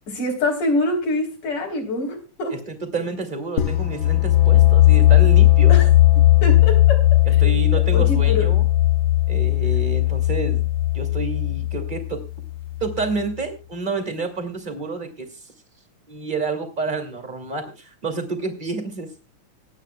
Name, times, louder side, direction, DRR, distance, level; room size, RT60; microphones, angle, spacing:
voice 1, 0.1-2.5 5.7-5.9 6.4-7.0 7.7-8.5, left 2 dB, 85° left, 1 dB, 5.1 m, -25 dB
voice 2, 2.5-5.8 7.3-8.6 9.3-10.6 10.9-12.2 12.8-15.3 16.1-19.1, right 3 dB, 15° right, 6 dB, 2.1 m, -29 dB
sound 1, 3.6-13.2, left 15 dB, 55° left, 1.6 m, -17 dB
26.0 x 9.5 x 2.3 m, 0.27 s
omnidirectional pair, 3.5 m